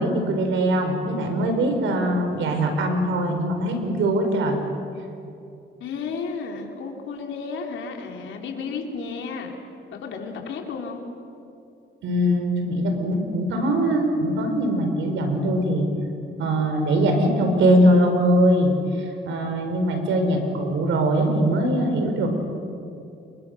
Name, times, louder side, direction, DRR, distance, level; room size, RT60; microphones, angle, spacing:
voice 1, 0.0-4.6 12.0-15.9 16.4-18.7 19.0-22.3, right 1 dB, 75° right, 5 dB, 4.7 m, -21 dB
voice 2, 5.8-9.6 9.9-11.0, left 5 dB, 75° left, 2 dB, 3.8 m, -32 dB
29.0 x 24.0 x 6.6 m, 2.6 s
cardioid pair, 90°, 20 cm